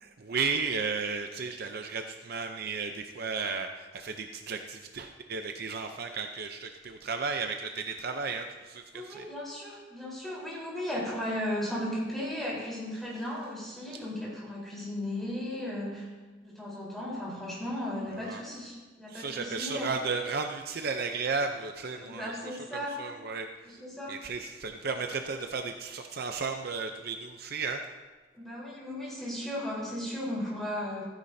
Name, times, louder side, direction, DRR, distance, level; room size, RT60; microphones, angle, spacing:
voice 1, 0.0-9.3 18.2-18.4 19.1-22.4 23.0-23.5 24.1-27.8, right 4 dB, 55° right, 5 dB, 0.6 m, -34 dB
voice 2, 8.9-16.1 16.4-19.9 22.0-23.0 23.6-24.3 28.3-31.0, left 1 dB, ahead, -6 dB, 3.9 m, -36 dB
14.5 x 10.0 x 2.7 m, 1.3 s
head